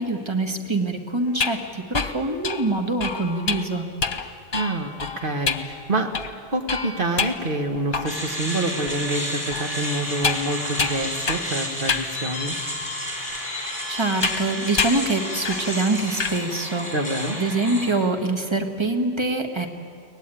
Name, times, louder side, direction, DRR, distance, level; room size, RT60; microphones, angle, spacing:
voice 1, 0.0-3.8 13.9-16.9 17.4-19.7, right 2 dB, 25° right, 5 dB, 1.7 m, -24 dB
sound 1, 1.3-8.4 8.9-9.0 9.5-11.6 11.9-12.1 12.8-12.9 14.2-14.5 14.8-15.1 15.4-15.7 16.0-16.4, left 5 dB, 55° left, 1.2 m, -28 dB
voice 2, 4.5-12.6 16.9-17.4, right 2 dB, 55° right, 5 dB, 1.9 m, -27 dB
sound 2, 8.1-17.9, left 1 dB, 5° left, 5.3 m, -31 dB
23.5 x 18.5 x 9.3 m, 2.4 s
omnidirectional pair, 1.1 m